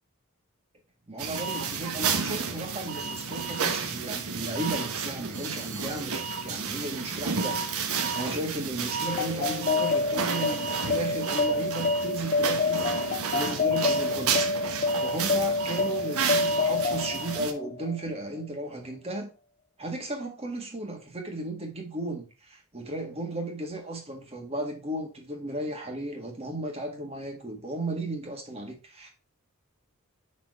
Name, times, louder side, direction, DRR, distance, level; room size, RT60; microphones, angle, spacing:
voice 1, 1.1-7.6 8.1-14.4 14.7-19.3 19.8-29.1, right 1 dB, 30° right, 1.6 m, -35 dB
sound 1, 1.2-17.5, right 5 dB, 85° right, 1.0 m, -31 dB
sound 2, 9.1-18.1, left 3 dB, 40° left, 0.7 m, -28 dB
6.0 x 4.3 x 4.6 m
head